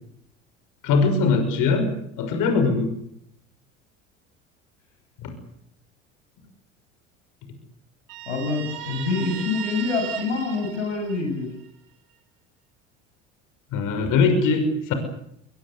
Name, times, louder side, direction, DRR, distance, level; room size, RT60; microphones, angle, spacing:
voice 1, 0.8-1.9 2.2-2.9 5.2-5.3 13.7-14.9, left 4 dB, 60° left, 7 dB, 6.3 m, -21 dB
Guitar, 8.1-11.7, right 11 dB, 60° right, 7.4 m, -36 dB
voice 2, 8.3-11.5, left 3 dB, 90° left, 4 dB, 6.9 m, -26 dB
23.0 x 22.5 x 8.4 m, 0.73 s
hypercardioid pair, 70°, 36 cm